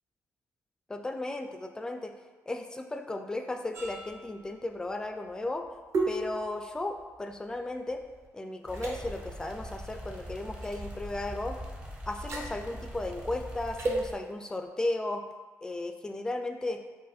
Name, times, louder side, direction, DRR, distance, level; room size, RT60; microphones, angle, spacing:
voice 1, 0.9-2.1 2.5-5.7 6.1-8.0 8.3-11.6 12.1-15.3 15.6-16.8, left 2 dB, 15° left, 5 dB, 0.3 m, -35 dB
sound 1, 3.7-8.3 8.7-8.9 10.6-10.9 12.1-12.5 13.8-14.0, right 3 dB, 55° right, 0.8 m, -35 dB
sound 2, 8.7-14.1, equal, 20° right, 0.6 m, -42 dB
4.9 x 2.5 x 4.1 m, 1.3 s
cardioid pair, 135°, 6 cm